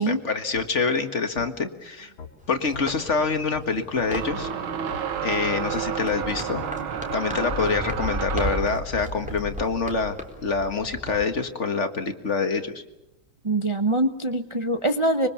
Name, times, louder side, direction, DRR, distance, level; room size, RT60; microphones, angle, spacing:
voice 1, 0.0-2.1 2.5-4.5 5.2-6.6 7.1-12.8, left 4 dB, 35° left, 7 dB, 1.8 m, -26 dB
sound 1, 0.5-0.7 1.4-1.5 2.2-2.3 2.7-2.9 3.5-3.7 4.4-4.5 4.9-5.1 5.7-5.9 6.5-6.7 7.1-7.2 7.9-8.0 8.7-8.9, left 5 dB, 75° left, 2.6 m, -40 dB
sound 2, 2.0-2.1 4.0-8.8, right 7 dB, 85° right, 2.1 m, -30 dB
sound 3, 2.4-11.2, right 1 dB, 5° right, 3.9 m, -36 dB
voice 2, 13.4-15.3, right 1 dB, 45° right, 7 dB, 0.3 m, -23 dB
25.5 x 23.5 x 7.2 m, 0.88 s
omnidirectional pair, 2.2 m